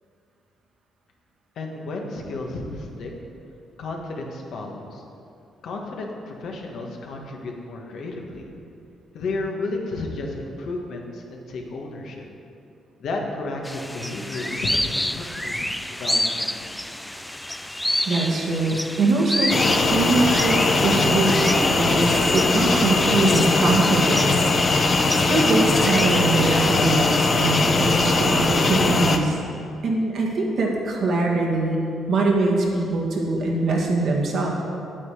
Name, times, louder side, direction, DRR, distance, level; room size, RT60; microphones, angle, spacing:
voice 1, 1.5-3.1 3.8-5.0 5.6-8.5 9.1-12.2 13.0-16.7, left 2 dB, 70° left, 1 dB, 1.4 m, -32 dB
sound 1, 13.6-26.9, left 1 dB, 5° left, 0.3 m, -29 dB
voice 2, 18.1-19.6 19.9-24.4 24.8-29.3 29.8-31.8 32.1-34.5, right 2 dB, 65° right, -1 dB, 1.8 m, -22 dB
sound 2, 19.5-29.2, left 3 dB, 40° left, 0.8 m, -20 dB
8.6 x 8.3 x 4.9 m, 2.6 s
cardioid pair, 90°, 0 cm